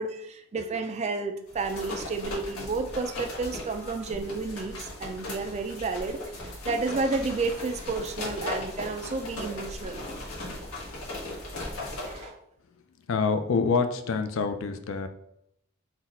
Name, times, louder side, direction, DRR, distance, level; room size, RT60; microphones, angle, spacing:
voice 1, 0.0-10.0 10.5-10.7 11.1-11.2 12.0-12.4, right 3 dB, 30° right, 7 dB, 0.3 m, -31 dB
sound 1, 1.5-12.3, left 1 dB, 80° left, 1.2 m, -37 dB
voice 2, 13.1-15.1, left 5 dB, 60° left, 8 dB, 0.4 m, -26 dB
3.9 x 2.3 x 4.2 m, 0.76 s
head